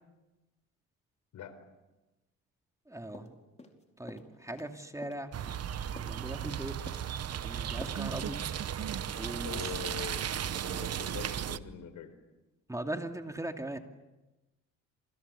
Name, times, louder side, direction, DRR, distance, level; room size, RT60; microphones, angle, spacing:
voice 1, 1.3-1.6 8.0-8.3 9.4-10.3 10.6-12.1, left 8 dB, 75° left, 11 dB, 4.4 m, -43 dB
voice 2, 2.9-3.3 4.0-5.3 6.0-6.8 7.4-8.4 9.2-9.8 12.7-13.8, right 1 dB, 10° right, 5 dB, 2.5 m, -39 dB
sound 1, 3.1-3.8 4.1-4.7 5.0-6.6 6.9-7.4 7.8-8.0 8.3-8.5, left 2 dB, 20° left, 4.8 m, -49 dB
sound 2, 5.3-11.6, right 9 dB, 55° right, 1.1 m, -35 dB
28.5 x 28.5 x 7.1 m, 1.1 s
cardioid pair, 90°, 30 cm